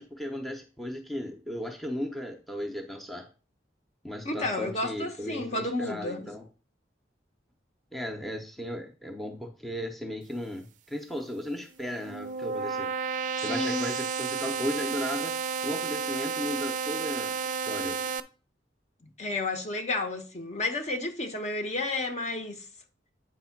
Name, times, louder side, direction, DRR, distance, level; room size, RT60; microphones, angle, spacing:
voice 1, 0.0-3.3 4.0-6.5 7.9-12.9 13.4-18.1, equal, ahead, 0.7 m, -36 dB
voice 2, 4.2-6.3 13.4-13.9 19.2-22.6, left 2 dB, 35° left, 1.0 m, -31 dB
sound 1, 11.7-18.2, right 6 dB, 45° right, 0.4 m, -32 dB
8.3 x 3.3 x 5.8 m
head